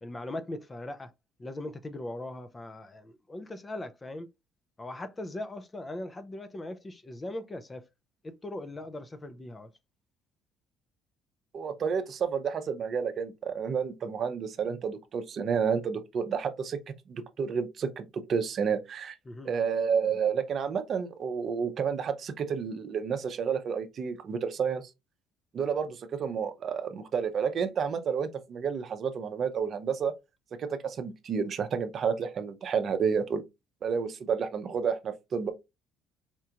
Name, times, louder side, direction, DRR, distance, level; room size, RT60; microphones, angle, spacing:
voice 1, 0.0-1.1 1.4-4.3 4.8-7.8 8.2-9.7 19.3-19.5, left 1 dB, 20° left, 0.5 m, -39 dB
voice 2, 11.5-16.8 17.1-19.2 19.4-24.9 25.5-30.1 30.6-33.4 33.8-35.5, right 6 dB, 50° right, 0.6 m, -30 dB
4.4 x 2.4 x 2.8 m
cardioid pair, 105°, 0 cm